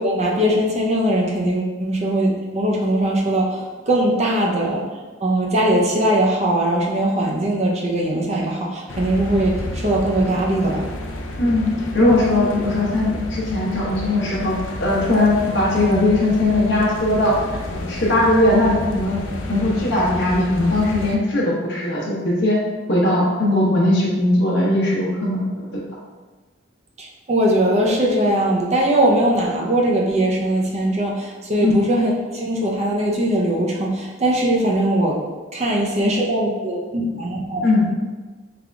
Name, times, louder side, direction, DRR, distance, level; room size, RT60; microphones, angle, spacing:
voice 1, 0.0-4.8 5.2-10.9 27.0-35.2 35.5-37.9, right 1 dB, 35° right, -2 dB, 0.6 m, -20 dB
sound 1, 8.9-21.2, left 1 dB, 85° left, 0.5 m, -31 dB
voice 2, 11.9-14.5 14.8-17.3 17.7-19.1 19.5-22.6 22.9-25.8 31.6-31.8 36.0-36.1 37.6-37.8, left 1 dB, 60° left, -7 dB, 1.0 m, -19 dB
3.6 x 3.5 x 3.4 m, 1.3 s
head